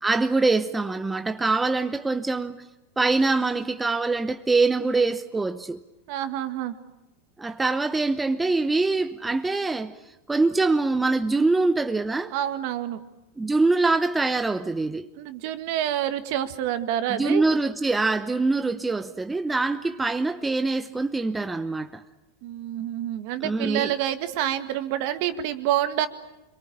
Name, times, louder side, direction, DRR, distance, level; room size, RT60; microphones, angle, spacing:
voice 1, 0.0-2.7 3.0-5.8 7.4-9.9 10.3-12.3 13.4-15.1 17.1-22.0 23.4-23.9, right 3 dB, 10° right, 0.9 m, -24 dB
voice 2, 6.1-6.7 12.3-13.0 15.2-17.4 22.4-26.1, right 11 dB, 55° right, 1.9 m, -27 dB
26.0 x 23.0 x 8.7 m
supercardioid pair, 135°, 0 cm